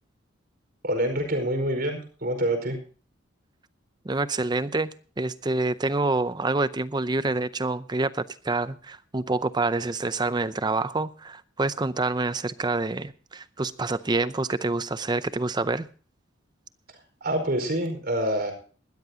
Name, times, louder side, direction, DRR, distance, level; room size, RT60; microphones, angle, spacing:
voice 1, 0.8-2.8 17.2-18.5, right 1 dB, 50° right, 4.8 m, -26 dB
voice 2, 4.0-15.9, right 3 dB, 20° right, 0.6 m, -27 dB
20.0 x 13.0 x 2.8 m
head